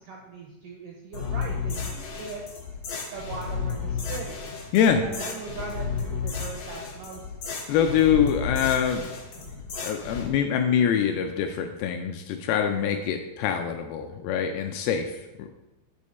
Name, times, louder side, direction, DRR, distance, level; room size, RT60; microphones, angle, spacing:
voice 1, 0.0-2.4 3.1-4.5 5.0-7.2, right 5 dB, 80° right, 0 dB, 1.9 m, -39 dB
sound 1, 1.1-10.3, left 5 dB, 60° left, 1.9 m, -33 dB
voice 2, 7.7-9.1 9.8-15.5, left 8 dB, 80° left, 5 dB, 2.2 m, -24 dB
8.4 x 5.0 x 4.1 m, 0.98 s
omnidirectional pair, 4.7 m